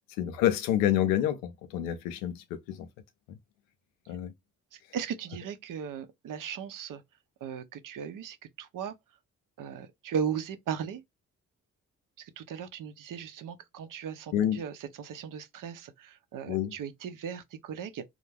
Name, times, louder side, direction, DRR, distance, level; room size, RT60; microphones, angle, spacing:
voice 1, 0.2-2.9 3.3-3.4 4.1-4.3 14.3-14.6 16.5-16.7, left 11 dB, 85° left, 0.5 m, -28 dB
voice 2, 4.7-7.0 7.4-8.9 9.6-11.0 12.2-18.0, right 7 dB, 55° right, 0.6 m, -37 dB
2.3 x 2.1 x 3.2 m
hypercardioid pair, 40°, 39 cm